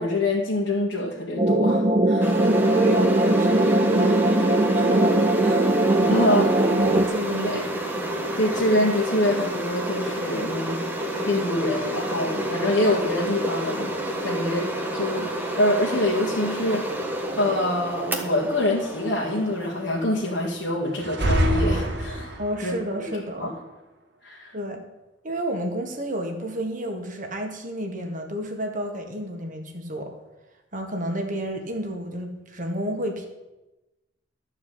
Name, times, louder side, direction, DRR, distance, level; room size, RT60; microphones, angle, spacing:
voice 1, 0.0-2.5 6.1-6.5 7.4-7.6 8.4-10.8 11.3-13.9 14.2-14.7 14.9-16.9 17.4-22.7 23.4-23.5 24.2-24.5, left 1 dB, 60° left, -6 dB, 2.1 m, -25 dB
sound 1, 1.4-7.0, right 1 dB, 25° right, 0.7 m, -20 dB
sound 2, 2.2-20.7, right 1 dB, 10° right, 1.3 m, -30 dB
voice 2, 2.6-6.3 6.7-7.8 22.4-23.5 24.5-24.8 25.2-30.1 30.7-33.3, right 1 dB, 40° right, 3 dB, 1.7 m, -31 dB
sound 3, 21.0-22.6, right 1 dB, 60° right, 1.7 m, -24 dB
13.0 x 4.8 x 8.6 m, 1.0 s
head